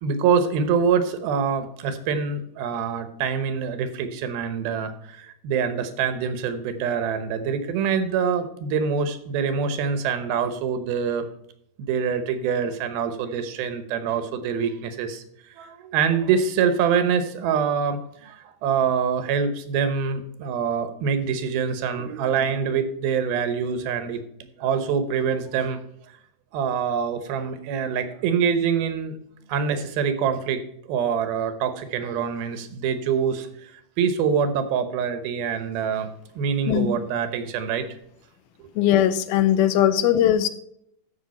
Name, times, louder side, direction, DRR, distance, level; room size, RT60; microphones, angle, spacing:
voice 1, 0.0-11.3 11.8-15.2 15.6-24.2 24.6-25.8 26.5-29.1 29.5-30.6 30.9-33.5 34.0-36.1 36.4-37.9 38.6-38.7, right 6 dB, 85° right, 10 dB, 3.0 m, -25 dB
voice 2, 38.8-40.5, left 11 dB, 85° left, 13 dB, 2.6 m, -19 dB
14.5 x 5.9 x 4.2 m, 0.74 s
omnidirectional pair, 4.2 m